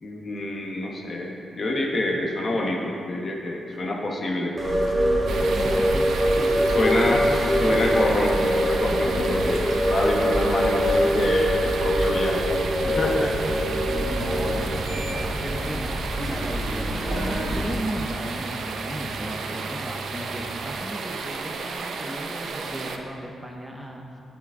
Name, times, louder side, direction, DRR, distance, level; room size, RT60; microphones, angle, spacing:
voice 1, 0.0-4.6 6.6-12.5 12.8-13.3, left 1 dB, 35° left, 0 dB, 1.0 m, -26 dB
sound 1, 4.6-17.6, equal, 30° right, 1.3 m, -24 dB
voice 2, 5.2-7.9 13.9-24.0, right 1 dB, 5° right, 0 dB, 0.5 m, -35 dB
sound 2, 5.3-23.0, right 4 dB, 75° right, 0.5 m, -33 dB
sound 3, 8.9-20.6, right 2 dB, 75° left, 1.4 m, -40 dB
10.0 x 6.0 x 3.5 m, 2.7 s
wide cardioid pair, 150°, 0 cm